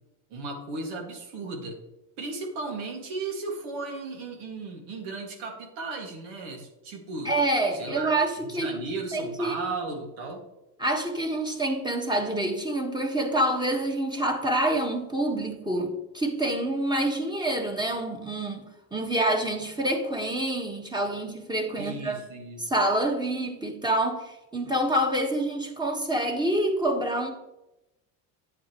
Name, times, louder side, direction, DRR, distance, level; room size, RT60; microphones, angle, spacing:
voice 1, 0.3-1.8 2.2-7.3 7.7-8.1 8.4-10.4 21.8-22.7, right 3 dB, 80° right, 1 dB, 2.2 m, -35 dB
voice 2, 7.2-8.8 9.1-9.6 10.8-22.2 22.6-27.3, right 1 dB, 10° right, 3 dB, 1.6 m, -27 dB
9.0 x 8.4 x 3.1 m, 0.95 s
supercardioid pair, 95°, 40 cm